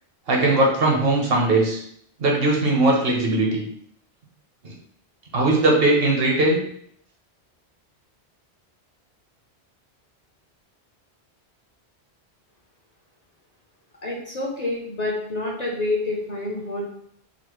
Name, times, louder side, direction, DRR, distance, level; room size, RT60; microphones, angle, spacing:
voice 1, 0.3-1.8 2.2-3.6 4.6-4.7 5.3-6.6, right 2 dB, 65° right, 0 dB, 1.0 m, -19 dB
voice 2, 14.0-16.8, left 2 dB, 45° left, -2 dB, 0.6 m, -27 dB
3.9 x 2.0 x 3.0 m, 0.67 s
omnidirectional pair, 1.1 m